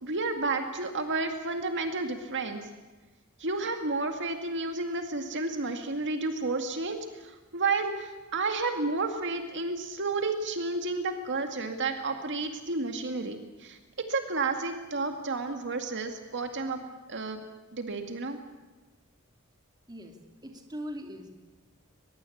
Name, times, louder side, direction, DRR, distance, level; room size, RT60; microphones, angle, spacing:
voice 1, 0.0-2.7 3.4-17.4 17.7-18.4, right 3 dB, 55° right, 6 dB, 2.1 m, -31 dB
voice 2, 20.4-21.3, equal, 20° right, 3 dB, 2.9 m, -40 dB
22.5 x 22.0 x 8.5 m, 1.2 s
head